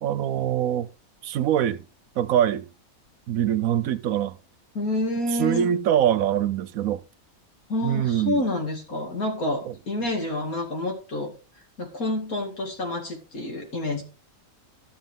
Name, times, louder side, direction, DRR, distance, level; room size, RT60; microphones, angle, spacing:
voice 1, 0.0-0.9 1.2-1.8 2.2-2.7 3.3-4.4 5.4-7.0 7.8-8.4 9.6-9.7, right 10 dB, 75° right, 1.1 m, -23 dB
voice 2, 4.7-5.7 7.7-11.3 11.8-14.0, left 1 dB, 80° left, 2.8 m, -28 dB
13.5 x 6.6 x 3.6 m
omnidirectional pair, 1.5 m